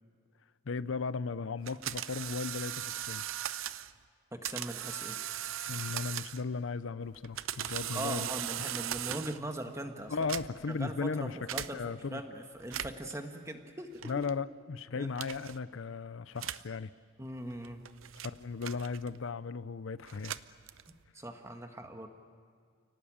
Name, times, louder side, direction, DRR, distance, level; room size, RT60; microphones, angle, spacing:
voice 1, 0.7-3.2 5.7-8.3 8.6-8.7 10.1-12.2 14.0-16.9 18.2-20.3, left 4 dB, 70° left, 16 dB, 0.5 m, -36 dB
sound 1, 1.7-3.9 4.4-6.6 7.1-9.5 10.1-10.8 11.5-11.7 12.6-13.1 14.0-14.3 15.2-15.6 16.4-16.7 17.5-19.3 20.0-21.1, right 11 dB, 75° right, 0.7 m, -39 dB
voice 2, 4.3-5.2 7.6-10.3 10.7-14.1 14.9-15.1 17.2-17.8 21.1-22.1, right 1 dB, 15° right, 5 dB, 1.6 m, -41 dB
29.0 x 18.5 x 8.8 m, 2.2 s
head